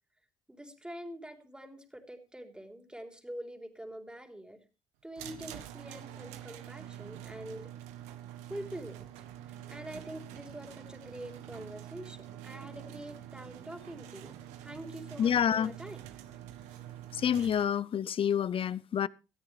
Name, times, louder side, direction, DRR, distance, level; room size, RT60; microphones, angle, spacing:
voice 1, 0.5-4.6 5.0-7.8 8.5-9.1 9.5-16.0, right 1 dB, 10° right, 3.7 m, -45 dB
sound 1, 5.2-17.6, right 11 dB, 85° right, 1.4 m, -46 dB
voice 2, 15.2-15.7 17.1-19.1, left 8 dB, 50° left, 0.7 m, -28 dB
19.5 x 13.5 x 3.4 m
supercardioid pair, 60°, 12 cm